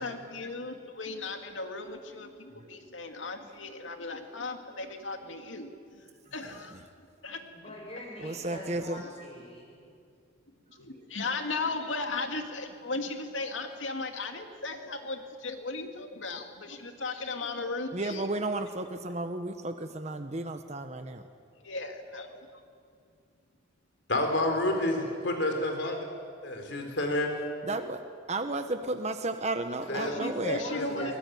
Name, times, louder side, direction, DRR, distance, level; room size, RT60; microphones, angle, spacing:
voice 1, 0.0-6.0 6.3-6.8 7.2-7.7 10.8-18.3 21.6-22.5 30.0-31.1, left 3 dB, 85° left, 5 dB, 2.3 m, -36 dB
voice 2, 7.5-9.8 24.9-25.1 29.8-31.2, left 1 dB, 30° left, -1 dB, 7.3 m, -43 dB
voice 3, 8.2-9.0 17.9-21.2 27.6-28.0 28.3-30.6, right 2 dB, 35° right, 7 dB, 1.2 m, -33 dB
voice 4, 24.1-26.1 26.4-27.3 29.9-30.1 30.7-31.2, left 1 dB, 65° left, 4 dB, 4.1 m, -29 dB
22.0 x 20.0 x 9.5 m, 2.3 s
head